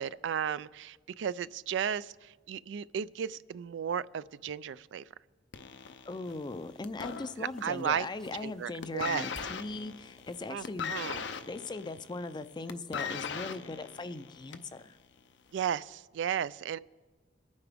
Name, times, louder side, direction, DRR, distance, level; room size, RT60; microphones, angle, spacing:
voice 1, 0.0-5.0 7.4-8.1 8.4-9.3 10.5-11.2 15.5-16.8, right 8 dB, 75° right, 0.3 m, -34 dB
sound 1, 5.5-7.9 8.2-8.5 8.8-14.8 15.6-15.7, left 6 dB, 70° left, 0.6 m, -39 dB
voice 2, 6.1-10.9 11.3-15.0, left 3 dB, 25° left, 0.4 m, -39 dB
sound 2, 6.2-11.6, equal, 5° left, 0.7 m, -58 dB
22.5 x 9.5 x 3.5 m
head